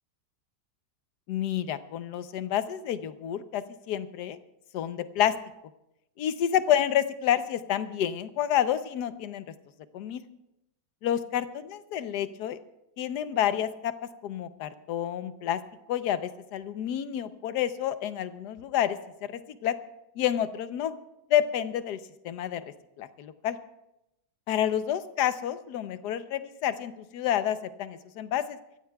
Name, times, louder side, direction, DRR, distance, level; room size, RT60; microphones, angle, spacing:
voice 1, 1.3-4.4 4.7-5.3 6.2-9.4 9.9-10.2 11.0-12.6 13.0-13.9 14.2-15.6 15.9-19.7 20.2-20.9 21.3-22.0 22.2-22.6 23.0-23.6 24.5-28.6, left 10 dB, 70° left, 12 dB, 1.2 m, -29 dB
25.0 x 14.5 x 2.3 m, 0.86 s
omnidirectional pair, 2.0 m